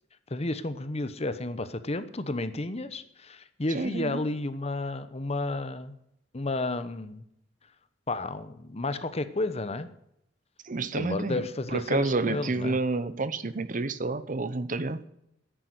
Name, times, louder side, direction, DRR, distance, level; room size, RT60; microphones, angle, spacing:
voice 1, 0.3-6.0 6.3-7.2 8.1-9.9 10.9-12.8, left 2 dB, 35° left, 12 dB, 0.9 m, -32 dB
voice 2, 3.7-4.2 10.6-15.1, right 3 dB, 45° right, 14 dB, 0.9 m, -29 dB
10.5 x 9.6 x 9.4 m, 0.77 s
head